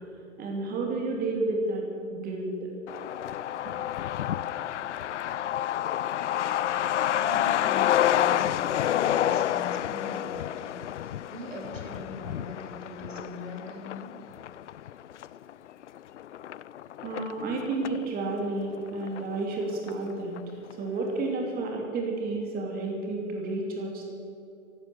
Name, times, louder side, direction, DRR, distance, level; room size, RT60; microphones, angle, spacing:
voice 1, 0.4-2.7 17.0-24.1, right 2 dB, 25° right, 1 dB, 2.8 m, -31 dB
Truck, 2.9-18.1 18.4-18.5 18.7-19.6 19.9-20.0 20.4-20.7, left 11 dB, 65° left, 0.5 m, -29 dB
voice 2, 7.1-14.1, left 2 dB, 75° right, 1 dB, 3.6 m, -42 dB
16.0 x 12.0 x 7.0 m, 2.8 s
figure-of-eight pair, 120°, 39 cm